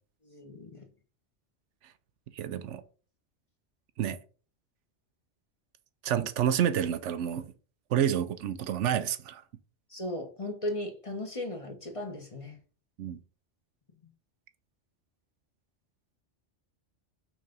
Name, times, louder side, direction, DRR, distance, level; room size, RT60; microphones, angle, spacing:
voice 1, 0.2-0.8 9.9-12.6, left 1 dB, 30° left, 1.3 m, -36 dB
voice 2, 2.4-2.8 4.0-4.2 6.0-7.5 7.9-9.4 13.0-13.2, right 9 dB, 85° right, 1.0 m, -29 dB
6.1 x 3.4 x 5.3 m
omnidirectional pair, 1.2 m